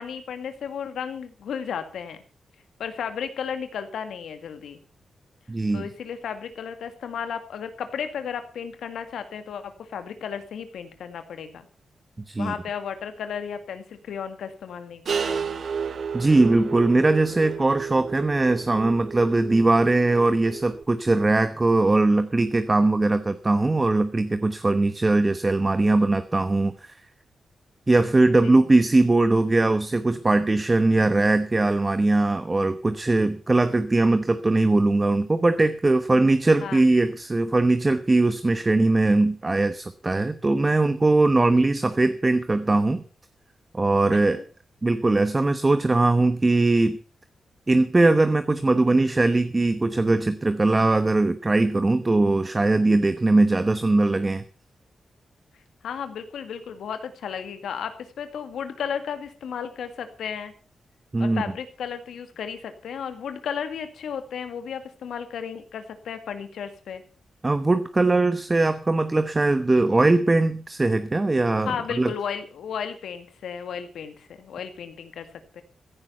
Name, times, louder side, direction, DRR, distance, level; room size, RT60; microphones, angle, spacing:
voice 1, 0.0-2.2 2.8-4.8 5.7-11.7 12.4-15.6 28.4-28.6 36.6-36.8 41.6-41.7 44.1-44.4 55.8-60.5 61.2-67.0 71.6-75.3 75.5-75.6, left 7 dB, 90° left, 9 dB, 1.9 m, -34 dB
voice 2, 5.5-5.9 12.3-12.5 16.1-27.0 27.9-43.0 43.7-44.4 44.8-47.0 47.7-54.4 61.1-61.4 67.4-72.1, right 2 dB, 25° right, 11 dB, 1.0 m, -20 dB
sound 1, 15.1-20.8, right 6 dB, 65° right, 1.1 m, -32 dB
15.5 x 10.5 x 5.6 m, 0.38 s
cardioid pair, 75°, 0 cm